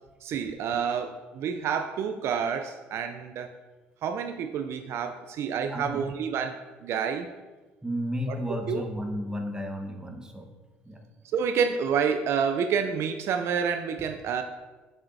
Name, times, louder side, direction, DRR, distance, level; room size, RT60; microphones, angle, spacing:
voice 1, 0.2-3.5 4.0-7.3 8.7-8.8 11.3-14.4, right 7 dB, 65° right, 7 dB, 0.4 m, -28 dB
voice 2, 5.7-6.0 7.8-10.5 10.8-11.0, equal, 15° right, 3 dB, 1.2 m, -33 dB
7.5 x 6.2 x 2.6 m, 1.2 s
supercardioid pair, 70°, 5 cm